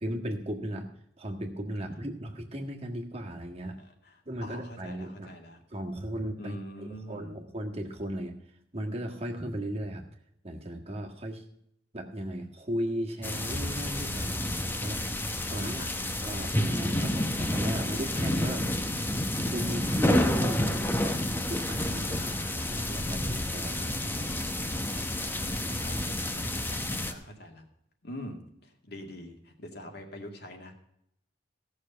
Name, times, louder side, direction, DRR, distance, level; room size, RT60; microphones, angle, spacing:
voice 1, 0.0-0.9 1.2-3.8 4.3-5.3 5.7-6.6 7.1-8.3 8.7-10.1 10.4-11.4 11.9-15.1 15.5-15.8 16.2-19.0 19.4-21.2 21.5-22.3 22.7-23.9 24.9-25.1, equal, 35° right, 2 dB, 1.6 m, -36 dB
voice 2, 3.8-5.6 6.4-7.4 15.6-15.9 22.2-22.7 25.7-27.6 28.0-30.7, equal, 60° left, 3 dB, 2.2 m, -44 dB
sound 1, 13.2-27.1, left 1 dB, 10° left, 0.9 m, -30 dB
16.0 x 6.6 x 5.6 m, 0.74 s
head